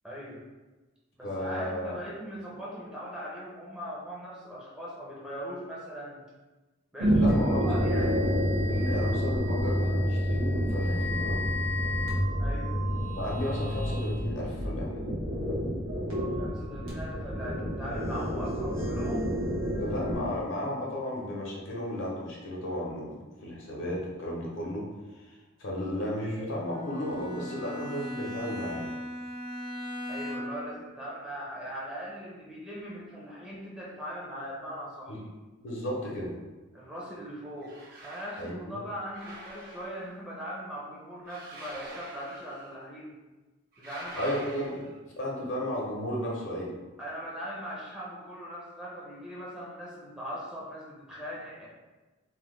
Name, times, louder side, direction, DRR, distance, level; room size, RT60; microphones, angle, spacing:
voice 1, 0.0-0.4 1.2-6.2 6.9-8.1 12.4-12.7 16.4-19.3 30.1-35.2 36.7-37.8 38.0-43.2 43.8-44.3 47.0-51.7, equal, 5° right, -6 dB, 0.5 m, -40 dB
voice 2, 1.2-2.0 7.1-8.3 8.7-11.5 13.2-15.0 19.8-24.9 25.2-28.9 35.1-35.2 35.6-36.3 38.4-38.8 44.2-44.9 45.2-46.7, left 1 dB, 65° left, -3 dB, 0.7 m, -34 dB
sound 1, 7.0-20.2, equal, 85° right, 0.9 m, -28 dB
Bowed string instrument, 26.7-30.8, equal, 65° right, 1.3 m, -38 dB
sound 2, 37.6-38.5 39.1-40.2 41.2-42.8 43.7-45.0, right 2 dB, 45° right, 0.7 m, -47 dB
2.8 x 2.1 x 3.2 m, 1.2 s
head